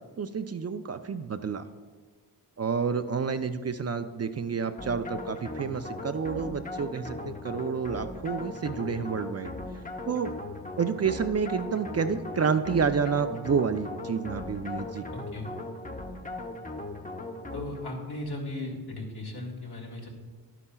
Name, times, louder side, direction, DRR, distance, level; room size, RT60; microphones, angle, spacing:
voice 1, 0.2-1.6 2.6-9.5 10.1-10.3 10.8-15.1, right 6 dB, 40° right, 9 dB, 0.5 m, -29 dB
sound 1, 4.8-18.0, left 2 dB, 20° left, 0.8 m, -38 dB
voice 2, 15.1-15.5 17.5-20.1, left 2 dB, 65° left, -1 dB, 2.3 m, -36 dB
11.5 x 9.8 x 2.3 m, 1.5 s
cardioid pair, 60°, 41 cm